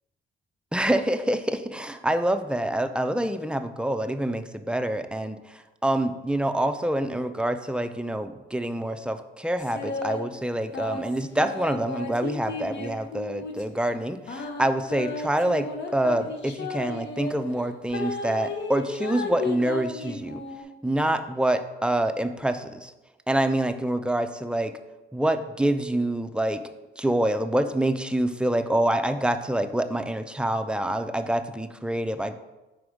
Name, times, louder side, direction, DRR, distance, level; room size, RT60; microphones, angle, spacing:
voice 1, 0.7-20.4 20.8-22.9 23.3-24.7 25.1-26.6 27.0-32.4, right 1 dB, 5° right, 8 dB, 0.4 m, -26 dB
sound 1, 9.6-10.2 10.7-13.6 14.3-17.3 17.9-20.6, left 3 dB, 65° left, 0.8 m, -33 dB
4.7 x 4.2 x 4.9 m, 1.1 s
cardioid pair, 90°, 20 cm